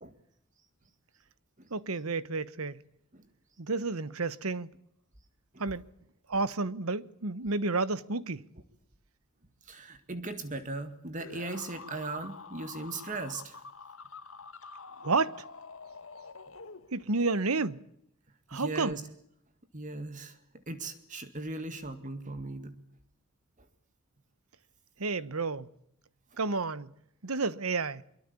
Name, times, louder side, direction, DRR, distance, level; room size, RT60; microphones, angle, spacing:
voice 1, 1.7-2.8 3.6-4.7 5.6-5.8 6.3-8.5 15.0-15.4 16.9-17.8 18.5-19.0 25.0-25.7 26.4-26.9 27.2-28.0, right 3 dB, 90° right, 1.2 m, -31 dB
voice 2, 9.7-13.6 18.5-19.0 19.7-20.4 20.7-22.8 26.3-26.4, right 2 dB, 35° right, 2.1 m, -38 dB
sound 1, 11.2-17.2, left 4 dB, 70° left, 1.8 m, -47 dB
25.0 x 23.5 x 8.5 m
head